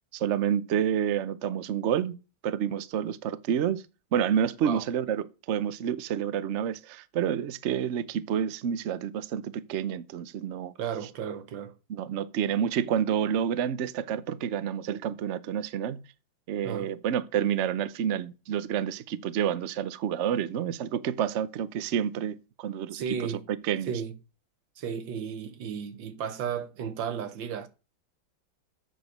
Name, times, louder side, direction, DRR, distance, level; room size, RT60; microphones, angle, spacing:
voice 1, 0.1-2.2 2.4-3.8 4.1-10.7 11.9-16.0 16.5-23.9, right 9 dB, 90° right, 0.6 m, -29 dB
voice 2, 10.8-11.7 16.6-16.9 22.9-23.4 23.9-24.1 24.8-27.7, right 7 dB, 70° right, 1.8 m, -34 dB
8.1 x 6.4 x 6.5 m
omnidirectional pair, 2.2 m